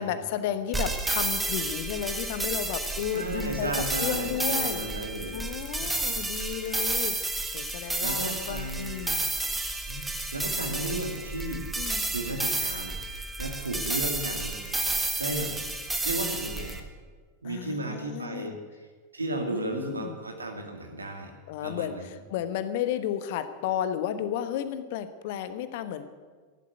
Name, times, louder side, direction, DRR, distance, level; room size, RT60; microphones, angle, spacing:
voice 1, 0.0-4.8 5.3-9.2 11.8-12.1 16.2-16.3 17.4-18.6 19.5-20.2 21.5-26.1, left 10 dB, 50° left, 11 dB, 1.2 m, -33 dB
sound 1, 0.7-16.8, right 2 dB, 5° right, 1.7 m, -31 dB
voice 2, 3.1-5.5 5.7-6.6 8.0-9.2 9.9-10.1 10.3-11.7 12.1-14.5 15.2-15.7 16.0-16.7 17.4-18.5 19.1-21.3 21.6-22.1, right 2 dB, 80° right, 3 dB, 2.5 m, -34 dB
15.5 x 11.5 x 8.0 m, 1.5 s
figure-of-eight pair, 90°, 0 cm